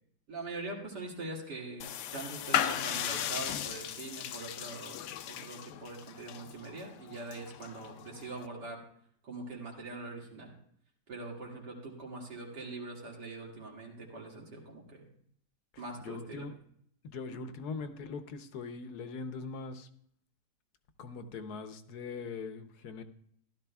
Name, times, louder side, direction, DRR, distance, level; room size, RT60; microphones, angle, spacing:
voice 1, 0.3-8.8 9.2-10.5 11.1-15.1 15.8-16.5 17.3-17.5, right 2 dB, 85° right, -1 dB, 2.7 m, -43 dB
sound 1, 1.8-8.5, left 10 dB, 90° left, 1.2 m, -36 dB
voice 2, 15.7-16.5 17.0-19.9 21.0-23.0, left 4 dB, 70° left, 9 dB, 1.3 m, -41 dB
15.0 x 12.0 x 2.3 m, 0.65 s
omnidirectional pair, 1.8 m